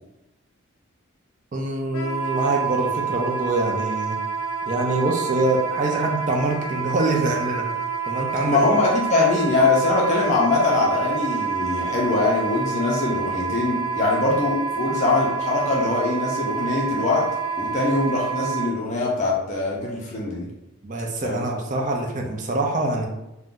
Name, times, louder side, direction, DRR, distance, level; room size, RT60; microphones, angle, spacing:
voice 1, 1.5-4.2 4.7-7.6 8.1-8.8 20.8-23.1, right 2 dB, 35° right, 0 dB, 0.4 m, -24 dB
Wind instrument woodwind instrument, 1.9-18.7, right 6 dB, 85° left, 0.5 m, -28 dB
voice 2, 8.5-17.3 17.6-20.5 21.2-21.4, left 3 dB, 35° left, -4 dB, 0.5 m, -22 dB
2.5 x 2.1 x 3.6 m, 0.95 s
head